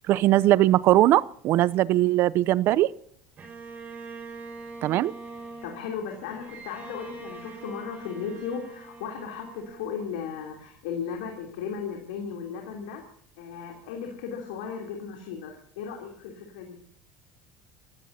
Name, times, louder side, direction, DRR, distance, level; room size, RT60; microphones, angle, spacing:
voice 1, 0.1-2.9 4.8-5.1, right 15 dB, 55° right, 20 dB, 0.6 m, -20 dB
Bowed string instrument, 3.4-10.6, right 3 dB, 35° right, 5.8 m, -43 dB
voice 2, 5.6-13.0 13.4-16.8, left 6 dB, 85° left, 1 dB, 3.1 m, -36 dB
29.5 x 15.0 x 2.8 m, 0.63 s
supercardioid pair, 105°, 4 cm